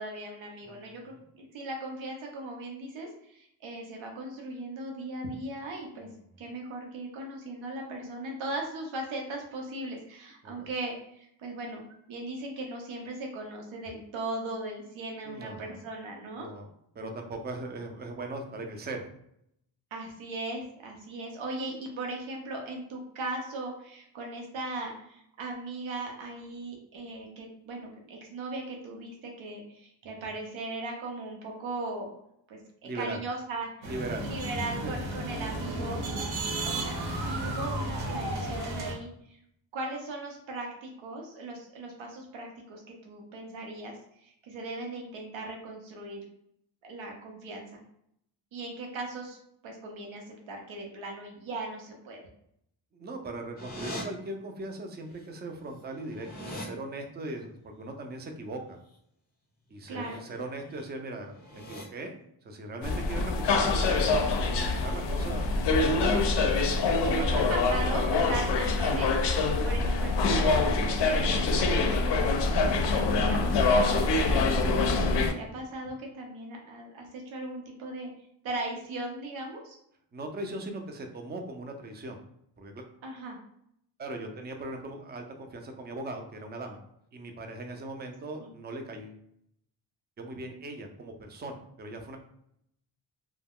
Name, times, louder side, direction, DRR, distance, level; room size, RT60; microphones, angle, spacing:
voice 1, 0.0-6.1 6.4-11.8 12.1-16.5 19.9-32.1 32.5-33.9 34.2-36.0 36.7-37.0 37.2-39.4 39.7-46.2 46.8-47.8 48.5-49.4 49.6-52.3 59.9-60.2 67.0-69.1 69.6-72.5 73.1-78.1 78.4-79.8 83.0-83.4 88.4-88.5, right 2 dB, 90° right, 1 dB, 0.7 m, -38 dB
voice 2, 0.6-1.0 10.4-10.7 15.2-15.8 16.4-16.7 16.9-19.0 32.8-33.2 33.8-34.2 34.8-34.9 52.9-58.8 59.7-62.1 62.4-66.2 66.8-67.4 69.6-70.2 80.1-82.2 82.6-82.9 84.0-86.8 87.1-89.2 90.2-92.2, right 2 dB, 25° right, 4 dB, 0.4 m, -39 dB
sound 1, 33.8-38.9, right 1 dB, 55° right, 0.7 m, -33 dB
sound 2, 53.6-54.0 55.2-55.3 55.6-56.7 59.8-60.2 60.6-60.9 61.3-61.8, equal, 20° left, 0.6 m, -41 dB
sound 3, 62.8-75.3, left 3 dB, 65° left, 0.5 m, -25 dB
2.3 x 2.2 x 3.5 m, 0.73 s
wide cardioid pair, 125°, 45 cm